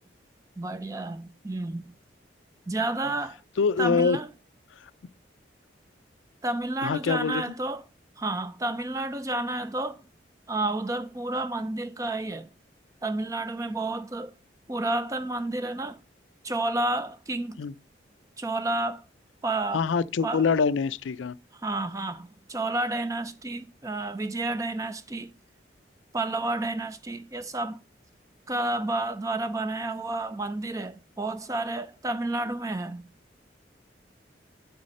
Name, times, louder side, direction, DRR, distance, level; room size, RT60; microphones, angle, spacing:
voice 1, 0.6-1.9 2.7-3.4 3.8-4.3 6.4-7.8 8.2-10.0 10.5-12.5 13.0-14.3 14.7-16.0 16.4-17.6 18.4-19.0 19.4-19.8 20.2-20.5 21.5-25.3 26.1-27.8 28.5-33.1, right 2 dB, 15° right, 0.4 m, -30 dB
voice 2, 3.6-4.2 6.8-7.4 17.6-17.7 19.7-21.3, left 5 dB, 80° left, 0.4 m, -24 dB
8.3 x 4.0 x 6.4 m
head